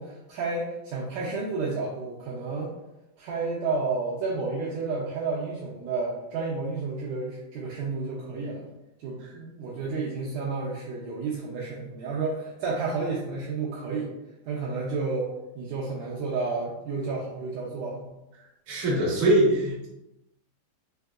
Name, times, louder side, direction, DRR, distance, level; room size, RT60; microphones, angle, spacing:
voice 1, 0.0-2.7 3.2-8.7 9.0-14.1 14.5-18.1, right 4 dB, 90° right, -4 dB, 1.8 m, -31 dB
voice 2, 18.7-19.9, right 1 dB, 60° right, -8 dB, 0.9 m, -22 dB
5.6 x 2.6 x 2.3 m, 0.96 s
omnidirectional pair, 4.2 m